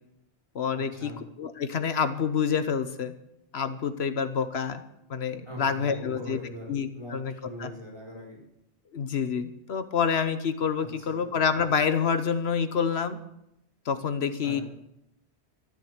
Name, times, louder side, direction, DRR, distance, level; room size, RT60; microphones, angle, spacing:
voice 1, 0.5-1.1 1.4-3.1 3.5-4.8 5.1-6.4 6.7-7.3 7.6-7.7 8.9-13.2 13.9-14.6, left 6 dB, 75° left, 10 dB, 1.2 m, -27 dB
voice 2, 5.5-6.7 6.9-7.1 7.4-8.4 11.0-11.3 14.4-14.6, equal, 25° right, -3 dB, 4.4 m, -41 dB
13.0 x 11.5 x 6.6 m, 0.80 s
omnidirectional pair, 1.1 m